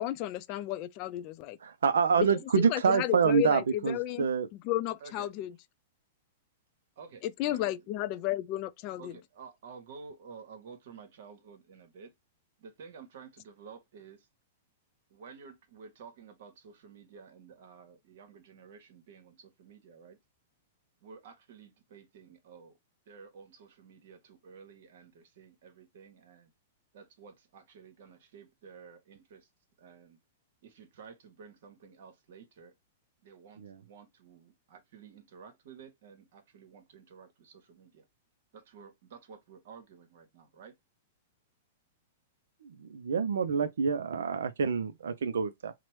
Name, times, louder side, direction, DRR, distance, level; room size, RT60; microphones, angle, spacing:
voice 1, 0.0-1.6 2.2-2.3 2.6-4.3 4.5-5.6 7.2-9.2, left 14 dB, 45° left, 0.3 m, -33 dB
voice 2, 1.6-4.5 33.6-33.8 43.1-45.7, right 6 dB, 80° right, 0.3 m, -27 dB
voice 3, 7.0-7.7 9.0-12.1 12.6-14.3 15.1-20.2 21.0-22.8 23.1-26.5 26.9-29.5 29.8-30.2 30.6-32.7 33.2-38.0 38.5-40.7, right 6 dB, 65° right, 1.0 m, -52 dB
2.9 x 2.1 x 3.0 m
hypercardioid pair, 120°, 0 cm